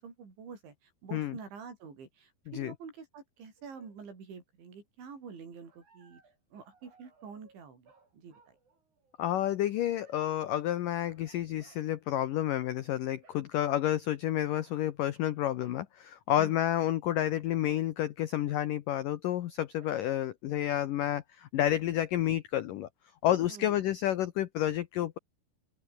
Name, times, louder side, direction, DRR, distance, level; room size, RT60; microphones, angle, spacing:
voice 1, 0.0-6.2 6.5-8.6 16.4-16.6 23.5-23.8, right 5 dB, 75° right, 8.3 m, -47 dB
sound 1, 3.6-4.0 5.6-9.3 10.0-10.4 11.0-11.8 12.4-12.7 13.2-13.8 14.5-14.8 15.6-15.9 16.5-16.7 17.6-17.9 18.5-18.7 19.8-19.9, right 4 dB, 40° right, 6.7 m, -63 dB
voice 2, 9.2-22.9 23.2-25.2, left 12 dB, 80° left, 1.9 m, -30 dB
open air
omnidirectional pair, 5.4 m